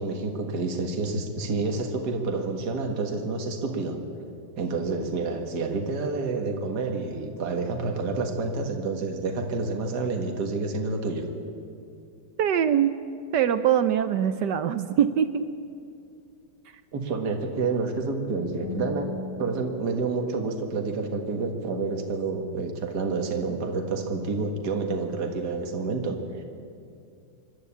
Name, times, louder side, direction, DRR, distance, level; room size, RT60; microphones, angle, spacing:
voice 1, 0.0-4.0 4.6-11.3 16.9-19.1 19.4-26.4, right 3 dB, 50° right, 3 dB, 2.1 m, -29 dB
voice 2, 12.4-12.9 13.3-15.5, right 9 dB, 70° right, 11 dB, 1.0 m, -23 dB
Bass guitar, 18.6-24.9, left 5 dB, 45° left, 1.7 m, -43 dB
25.5 x 12.0 x 8.6 m, 2.5 s
omnidirectional pair, 2.4 m